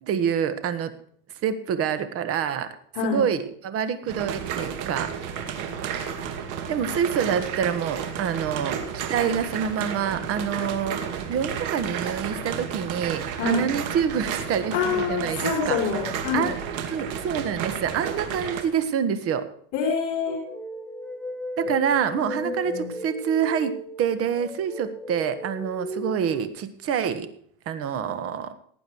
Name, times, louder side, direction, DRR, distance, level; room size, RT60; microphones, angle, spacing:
voice 1, 0.0-0.9 1.4-2.7 3.0-5.1 6.7-8.8 9.1-11.0 11.3-15.8 16.3-16.6 16.9-19.5 21.6-27.3 27.6-28.5, right 7 dB, 40° right, 11 dB, 1.5 m, -26 dB
sound 1, 4.1-18.6, right 7 dB, 55° right, 2.5 m, -32 dB
voice 2, 14.7-16.5 19.7-20.4 22.1-22.9, left 6 dB, 50° left, -2 dB, 4.4 m, -26 dB
sound 2, 20.3-26.5, equal, 5° left, 1.6 m, -35 dB
18.0 x 9.0 x 4.7 m, 0.63 s
supercardioid pair, 150°, 37 cm